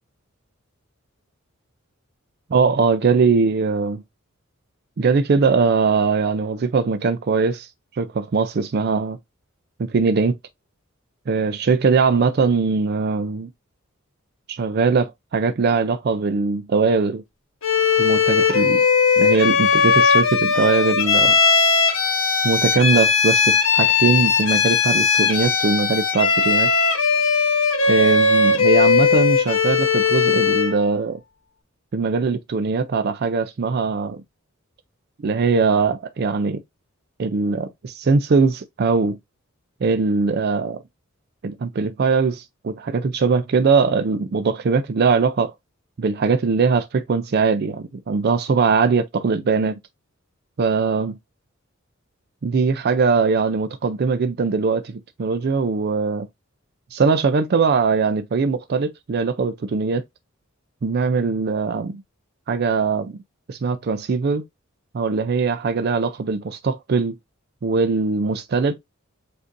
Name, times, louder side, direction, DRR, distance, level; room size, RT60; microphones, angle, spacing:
voice 1, 2.5-4.0 5.0-9.2 9.8-10.4 11.3-13.5 14.5-17.2 18.0-18.8 19.2-21.3 22.4-26.7 27.9-31.2 31.9-34.2 35.2-36.6 37.2-39.2 39.8-40.8 41.4-45.5 46.0-49.8 50.6-51.2 52.4-56.3 56.9-60.0 60.8-62.0 62.5-63.2 63.5-64.4 64.9-67.2 67.6-68.8, right 4 dB, 50° right, 0.4 m, -21 dB
Bowed string instrument, 17.6-30.8, left 5 dB, 80° left, 1.4 m, -18 dB
7.7 x 2.6 x 2.5 m
head